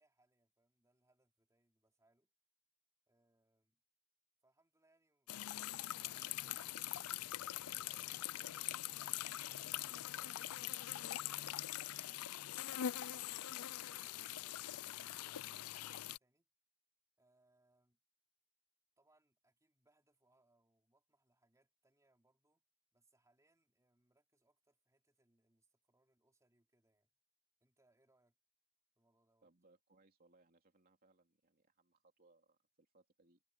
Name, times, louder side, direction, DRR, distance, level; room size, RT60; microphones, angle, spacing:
voice 1, 0.0-2.3 3.1-3.8 4.4-10.3 10.9-15.5 15.8-16.5 17.2-18.0 19.0-22.7 22.9-27.1 27.6-28.4 29.0-29.5, right 2 dB, 15° right, 3.6 m, -78 dB
sound 1, 5.3-16.2, left 12 dB, 85° left, 0.5 m, -43 dB
voice 2, 29.4-33.4, right 3 dB, 45° right, 2.9 m, -71 dB
head